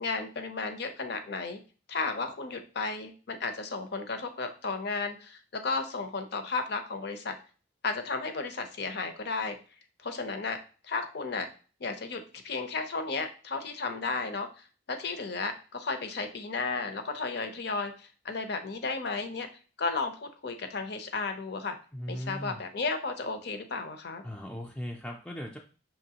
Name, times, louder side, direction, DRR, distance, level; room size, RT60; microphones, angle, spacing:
voice 1, 0.0-1.6 1.9-7.4 7.8-9.6 10.0-10.6 10.8-11.5 11.8-14.5 14.9-19.5 19.8-21.8 22.1-24.2, left 4 dB, 60° left, 8 dB, 0.6 m, -33 dB
voice 2, 21.9-22.6 24.2-25.6, equal, 5° left, 0 dB, 0.3 m, -38 dB
5.8 x 3.0 x 2.8 m, 0.37 s
head